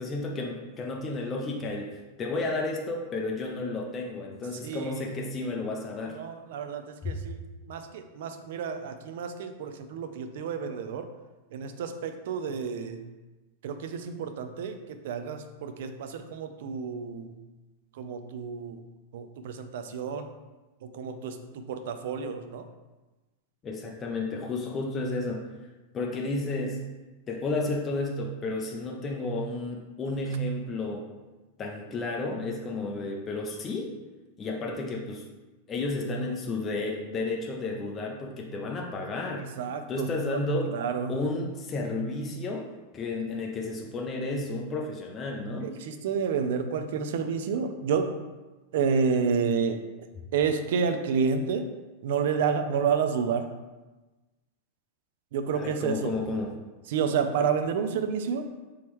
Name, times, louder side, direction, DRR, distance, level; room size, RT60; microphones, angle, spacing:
voice 1, 0.0-6.2 7.0-7.1 23.6-25.4 25.9-26.8 27.3-31.0 31.6-33.9 34.4-35.2 35.7-39.4 39.9-40.7 41.1-42.7 42.9-45.7 55.5-56.5, left 2 dB, 20° left, 0 dB, 0.4 m, -32 dB
voice 2, 4.6-4.9 6.1-7.4 7.7-11.1 11.5-13.0 13.6-17.3 18.0-18.8 19.1-20.3 20.8-22.6 39.4-40.4 40.7-41.2 45.6-48.1 48.7-49.8 50.3-51.7 52.0-53.5 55.3-56.1 56.9-58.5, right 6 dB, 60° right, 8 dB, 0.4 m, -30 dB
3.5 x 3.0 x 4.6 m, 1.2 s
supercardioid pair, 170°, 0 cm